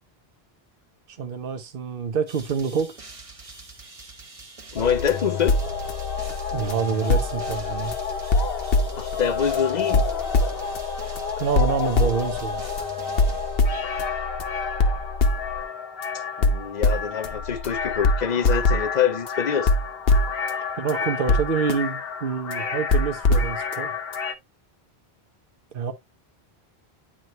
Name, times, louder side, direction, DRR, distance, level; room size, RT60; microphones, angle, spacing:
voice 1, 1.1-2.9 6.5-7.9 11.4-12.7 20.8-23.9 25.7-25.9, right 6 dB, 60° right, 1.1 m, -27 dB
sound 1, 2.3-14.2, right 3 dB, 35° right, 1.1 m, -45 dB
voice 2, 4.7-5.6 9.0-10.0 16.4-19.7, left 8 dB, 50° left, 0.8 m, -25 dB
sound 2, 4.8-24.3, left 3 dB, 70° left, 1.1 m, -24 dB
9.3 x 3.7 x 3.0 m
omnidirectional pair, 1.0 m